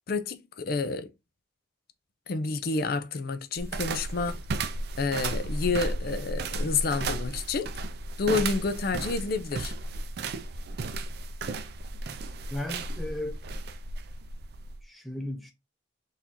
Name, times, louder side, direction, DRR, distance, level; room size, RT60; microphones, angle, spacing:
voice 1, 0.1-1.1 2.3-4.4 5.0-7.7 8.2-9.7, left 4 dB, 55° left, 0.5 m, -29 dB
sound 1, 3.6-14.8, right 2 dB, 55° right, 0.4 m, -34 dB
voice 2, 12.5-13.4 14.8-15.5, left 1 dB, ahead, 0.5 m, -35 dB
3.9 x 2.6 x 2.9 m
head